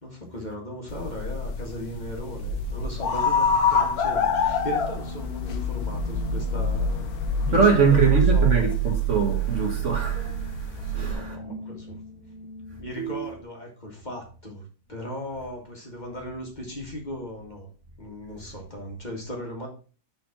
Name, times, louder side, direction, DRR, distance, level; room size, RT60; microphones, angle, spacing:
voice 1, 0.0-7.0 7.4-8.5 10.8-12.0 12.8-17.7 18.0-19.7, equal, 30° left, 1.9 m, -37 dB
sound 1, 0.9-11.1, left 1 dB, 75° left, 1.4 m, -26 dB
sound 2, 1.7-13.4, right 2 dB, 25° right, 0.9 m, -41 dB
voice 2, 7.4-11.4, right 5 dB, 50° right, 1.7 m, -23 dB
6.4 x 4.3 x 5.7 m
omnidirectional pair, 1.6 m